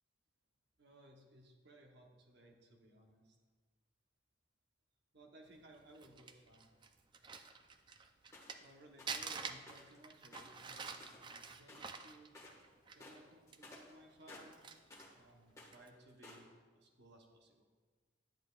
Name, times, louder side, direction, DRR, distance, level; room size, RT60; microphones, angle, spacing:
voice 1, 0.8-3.4 5.1-6.7 8.6-12.3 12.9-14.6 15.2-16.5 16.7-17.7, right 1 dB, 60° right, 2 dB, 0.9 m, -61 dB
Crumpling crinkling, 5.7-8.7 9.1-13.2 13.5-13.6 14.2-15.1 15.6-15.9, right 5 dB, 25° right, 0.4 m, -47 dB
sound 1, 8.3-8.6 9.0-9.2 9.6-10.0 10.3-11.4 11.6-12.0 12.3-12.6 12.9-15.2 15.5-16.5, left 2 dB, 15° left, 1.4 m, -56 dB
10.5 x 8.8 x 2.3 m, 1.4 s
head